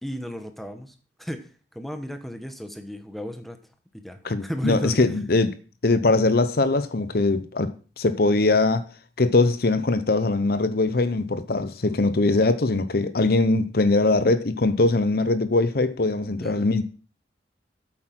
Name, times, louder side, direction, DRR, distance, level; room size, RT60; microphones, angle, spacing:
voice 1, 0.0-3.6 3.9-5.0 16.3-16.6, equal, ahead, 1.2 m, -34 dB
voice 2, 4.2-5.5 5.8-8.9 9.2-16.8, left 2 dB, 60° left, 0.8 m, -21 dB
8.8 x 8.3 x 6.1 m
head